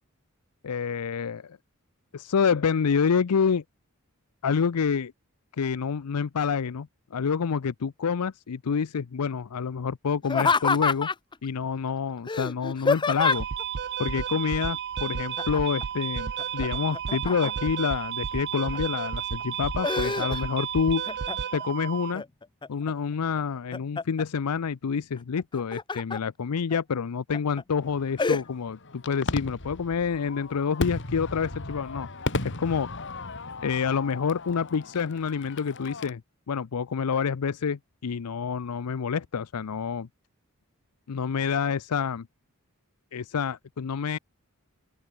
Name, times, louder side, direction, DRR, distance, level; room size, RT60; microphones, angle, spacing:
voice 1, 0.6-1.6 2.1-3.6 4.4-5.1 5.6-11.1 11.4-13.5 14.0-21.1 21.5-22.2 22.7-32.1 32.4-32.9 33.6-36.2 36.5-40.1 41.1-42.2 43.1-44.2, left 6 dB, 85° left, 0.5 m, -28 dB
Laughter, 10.2-11.3 12.3-13.6 15.4-15.8 16.2-17.8 18.3-19.0 19.4-20.7 21.0-21.6 22.1-22.9 23.4-24.2 25.4-26.2 26.7-26.8 27.3-27.6 28.2-28.4, left 4 dB, 20° left, 0.6 m, -27 dB
sound 1, 13.2-22.1, right 7 dB, 50° right, 0.6 m, -32 dB
Fireworks, 27.8-36.1, left 2 dB, 55° left, 3.0 m, -36 dB
open air
head